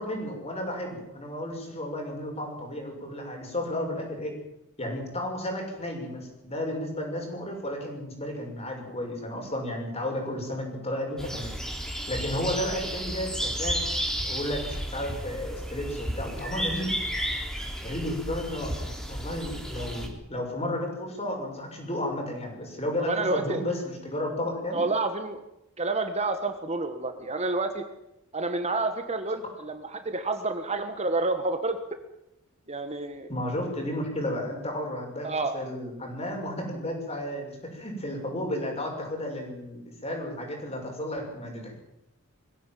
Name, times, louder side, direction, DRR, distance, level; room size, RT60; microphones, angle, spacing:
voice 1, 0.0-4.3 4.8-11.5 12.1-13.8 14.2-16.9 17.8-24.9 33.3-35.3 35.5-41.8, left 1 dB, 30° left, 2 dB, 6.8 m, -33 dB
sound 1, 11.2-20.1, equal, 5° left, 3.8 m, -33 dB
voice 2, 23.0-23.6 24.7-25.4 25.8-27.8 28.3-31.8 32.7-33.3 35.2-35.5, right 3 dB, 30° right, 7 dB, 1.6 m, -29 dB
22.5 x 16.0 x 9.3 m, 0.86 s
head